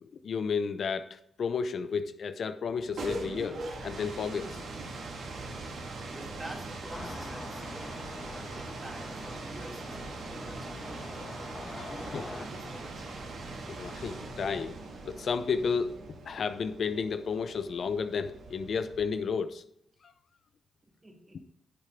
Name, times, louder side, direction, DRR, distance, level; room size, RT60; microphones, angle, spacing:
voice 1, 0.0-4.6 11.8-12.2 13.7-14.8 15.1-16.0 16.2-19.6 20.0-20.1, left 5 dB, 65° left, 0.7 m, -32 dB
sound 1, 2.7-19.4, right 2 dB, 75° right, 2.0 m, -41 dB
voice 2, 5.8-11.4 11.7-13.1 20.8-21.4, right 1 dB, 30° right, 2.2 m, -48 dB
sound 2, 6.9-12.5, left 3 dB, 40° left, 1.7 m, -45 dB
10.0 x 7.5 x 3.7 m
cardioid pair, 55°, 0 cm